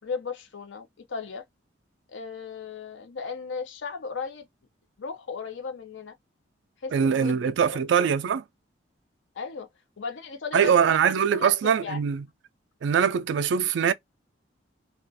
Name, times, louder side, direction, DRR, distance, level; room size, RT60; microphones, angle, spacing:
voice 1, 0.0-1.4 2.1-4.5 5.0-6.1 6.8-7.7 9.3-9.7 10.0-12.0, left 5 dB, 80° left, 0.5 m, -36 dB
voice 2, 6.9-8.4 10.5-12.2 12.8-13.9, right 7 dB, 70° right, 0.3 m, -22 dB
2.4 x 2.3 x 2.5 m
head